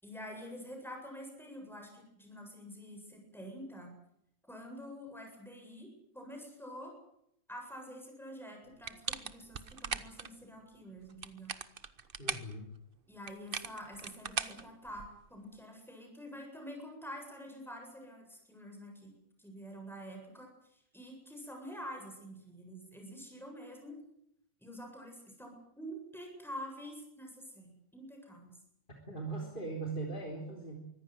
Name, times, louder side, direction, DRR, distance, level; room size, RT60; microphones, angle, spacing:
voice 1, 0.0-3.9 4.5-5.9 6.1-6.9 7.5-11.5 13.1-19.1 19.4-24.0 24.6-28.5, equal, ahead, 2 dB, 7.8 m, -47 dB
sound 1, 8.8-10.3 11.1-12.5 13.3-15.3, right 6 dB, 45° right, 1.2 m, -39 dB
voice 2, 12.2-12.7 29.1-30.8, right 3 dB, 40° left, 0 dB, 3.9 m, -39 dB
24.5 x 15.5 x 9.4 m, 0.75 s
omnidirectional pair, 1.3 m